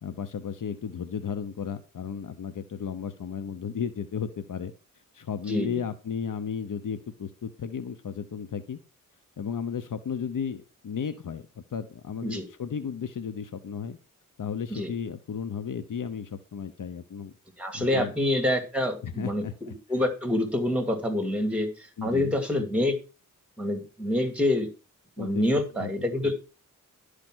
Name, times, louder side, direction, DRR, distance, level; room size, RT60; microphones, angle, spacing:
voice 1, 0.0-4.7 5.1-8.8 9.4-14.0 14.4-17.3 17.7-18.1 19.0-19.7 22.0-22.4 25.2-25.9 26.2-26.3, left 7 dB, 65° left, 10 dB, 0.9 m, -34 dB
voice 2, 5.5-5.8 12.2-12.4 14.7-14.9 17.6-22.9 23.6-24.7 25.2-26.3, left 1 dB, 5° right, 5 dB, 2.3 m, -27 dB
12.0 x 5.0 x 6.1 m, 0.31 s
wide cardioid pair, 85°, 35 cm